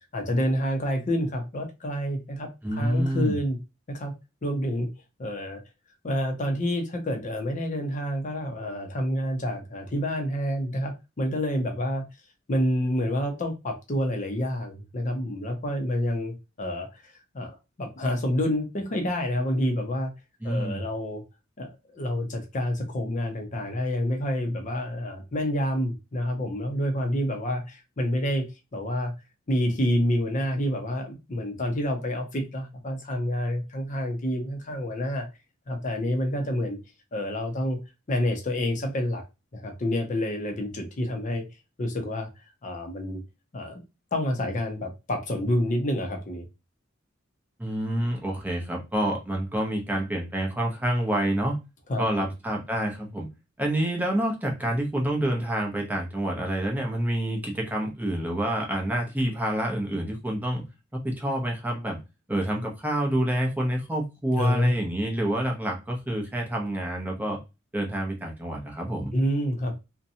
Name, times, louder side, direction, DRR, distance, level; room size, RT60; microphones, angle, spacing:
voice 1, 0.1-3.6 3.9-4.1 4.4-4.9 5.2-5.6 6.0-12.0 12.5-20.1 20.4-21.2 21.6-29.1 29.5-35.3 35.7-36.8 37.1-37.8 38.1-39.2 39.5-41.4 41.8-42.3 42.6-43.2 43.5-43.8 44.1-46.5 51.9-52.3 64.4-64.7 69.1-69.8, equal, 40° left, 4 dB, 0.6 m, -28 dB
voice 2, 2.6-3.4 20.4-20.8 47.6-51.6 52.0-53.3 53.6-60.6 60.9-62.0 62.3-67.4 67.7-69.1, right 1 dB, 10° right, 0 dB, 0.6 m, -27 dB
2.6 x 2.2 x 2.6 m, 0.26 s
head